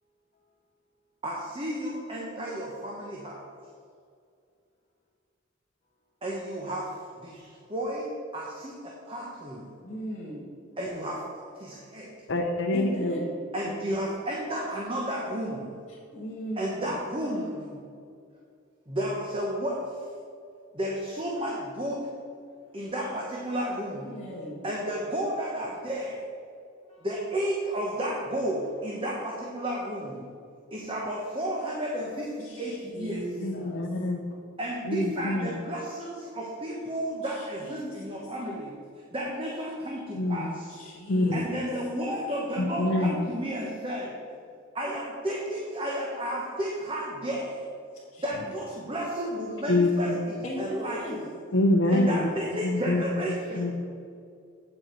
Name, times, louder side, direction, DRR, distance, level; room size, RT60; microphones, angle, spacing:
voice 1, 1.2-3.4 6.2-6.9 7.2-9.6 10.8-12.1 13.5-15.7 16.6-17.8 18.9-19.8 20.7-22.0 22.7-24.1 24.6-26.2 27.0-30.2 30.7-33.2 34.6-38.7 39.1-40.7 41.3-44.1 44.7-47.6 48.2-50.1 50.3-51.0 51.9-53.8, equal, 25° right, -3 dB, 1.1 m, -32 dB
voice 2, 9.8-10.4 12.7-13.4 15.9-16.9 22.8-23.1 24.0-24.7 26.8-27.1 27.6-28.0 28.8-29.0 29.5-30.0 32.4-33.9 37.2-38.1 40.7-41.4 47.9-48.3 50.4-51.3, equal, 30° left, -8 dB, 1.8 m, -39 dB
voice 3, 12.3-13.2 33.4-34.2 34.9-35.6 40.1-40.6 41.1-41.4 42.6-43.2 49.7-50.2 51.5-52.3 52.6-53.0 53.5-53.8, left 2 dB, 65° left, 1 dB, 0.7 m, -25 dB
8.7 x 7.5 x 4.6 m, 2.3 s
head